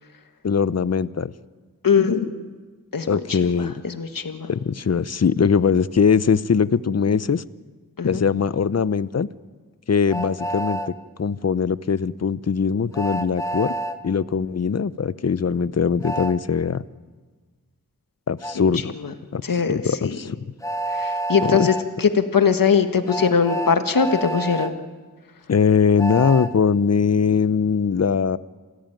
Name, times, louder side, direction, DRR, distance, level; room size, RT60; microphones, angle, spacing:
voice 1, 0.4-1.3 3.1-3.8 4.5-7.4 8.0-9.3 9.9-10.8 11.2-13.7 14.0-16.8 18.3-18.9 19.3-20.4 21.4-21.7 25.5-28.4, left 6 dB, 45° left, 17 dB, 0.8 m, -21 dB
voice 2, 1.8-2.3 2.9-3.4 3.8-4.5 8.0-8.2 19.4-20.2 20.9-21.7 22.0-24.8, left 6 dB, 70° left, 8 dB, 1.8 m, -20 dB
Train, 10.1-10.9 12.9-14.0 16.0-16.4 18.4-18.6 20.6-21.8 23.1-24.7 26.0-26.5, right 1 dB, 10° left, 1.6 m, -28 dB
28.0 x 16.0 x 9.2 m, 1.4 s
cardioid pair, 60°, 35 cm